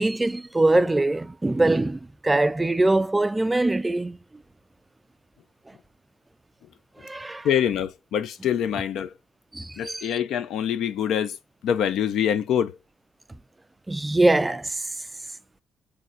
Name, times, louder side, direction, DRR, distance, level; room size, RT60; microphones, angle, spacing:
voice 1, 0.0-4.2 7.0-7.5 9.5-10.1 13.9-14.9, right 2 dB, 15° right, 0.3 m, -23 dB
voice 2, 7.4-9.1 9.8-11.4 11.6-12.8, left 9 dB, 80° left, 0.5 m, -25 dB
3.6 x 3.1 x 2.5 m
cardioid pair, 90°, 0 cm